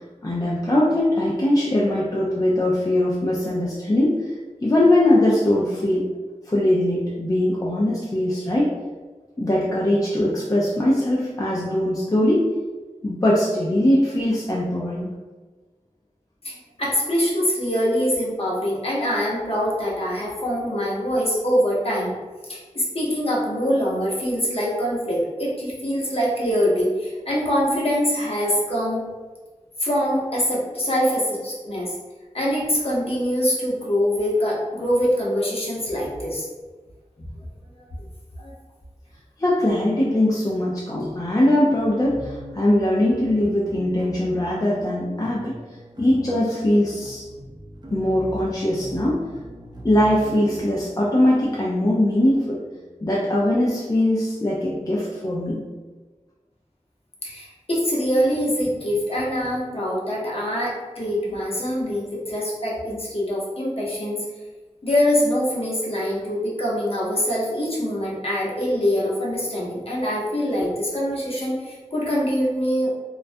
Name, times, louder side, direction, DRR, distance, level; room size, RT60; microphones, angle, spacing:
voice 1, 0.2-4.3 4.6-6.1 6.5-8.7 9.4-12.4 13.0-15.1 39.4-45.5 46.0-47.3 47.9-49.2 49.8-52.6 53.0-55.6, left 1 dB, 30° left, -5 dB, 0.4 m, -21 dB
voice 2, 16.4-22.1 22.5-29.0 29.8-31.9 32.3-36.5 38.4-38.5 57.2-64.2 64.8-72.9, equal, 50° left, -5 dB, 0.7 m, -24 dB
sound 1, 41.7-54.5, equal, 35° right, 0.5 m, -41 dB
2.3 x 2.1 x 2.5 m, 1.3 s
wide cardioid pair, 50°, 13 cm